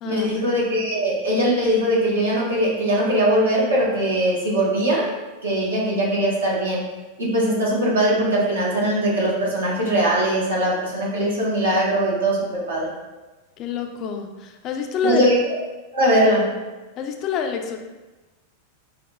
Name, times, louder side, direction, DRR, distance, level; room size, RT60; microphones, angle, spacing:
voice 1, 0.0-5.0 5.4-6.8 7.2-12.9 15.0-15.4 15.9-16.5, right 1 dB, 85° right, -5 dB, 0.9 m, -21 dB
voice 2, 13.6-15.3 17.0-17.8, left 5 dB, 40° left, 4 dB, 0.3 m, -27 dB
4.1 x 2.0 x 2.2 m, 1.2 s
hypercardioid pair, 95°, 0 cm